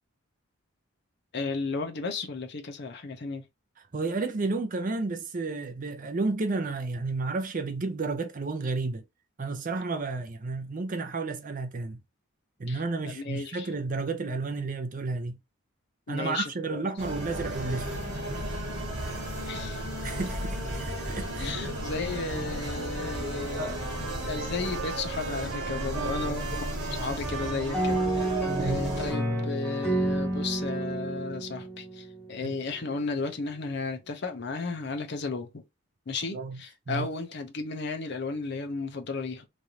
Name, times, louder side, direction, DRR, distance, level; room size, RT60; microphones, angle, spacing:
voice 1, 1.3-3.5 12.7-13.7 16.1-16.8 19.5-19.8 21.4-23.9 24.2-26.4 26.9-35.6 36.1-39.5, left 4 dB, 50° left, 0.6 m, -34 dB
voice 2, 3.9-9.0 9.4-12.0 12.6-15.4 16.1-17.9 20.0-21.6 23.6-23.8 25.9-26.1 28.6-28.9 32.4-32.6 36.3-36.6 36.9-37.1, right 3 dB, 40° right, 0.5 m, -32 dB
sound 1, 17.0-29.1, right 1 dB, 55° right, 1.4 m, -34 dB
Trumpet, 22.9-28.4 28.9-30.9, right 5 dB, 75° right, 1.1 m, -42 dB
sound 2, 27.7-32.4, right 1 dB, 5° left, 0.7 m, -30 dB
3.1 x 2.5 x 2.8 m
head